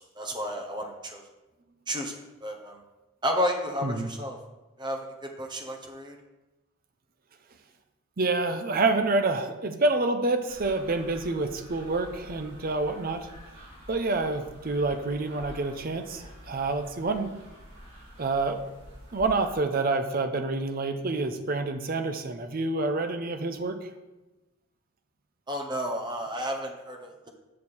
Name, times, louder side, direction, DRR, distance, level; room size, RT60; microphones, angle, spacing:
voice 1, 0.2-1.2 1.9-2.8 3.2-4.4 4.8-5.1 5.4-6.1 25.5-27.3, equal, 20° right, 2 dB, 0.9 m, -32 dB
voice 2, 8.2-13.3 13.9-17.3 18.2-18.6 19.1-23.8, right 3 dB, 40° right, 7 dB, 0.6 m, -27 dB
sound 1, 10.5-19.6, equal, 65° right, 2.9 m, -48 dB
7.0 x 6.5 x 4.3 m, 1.1 s
head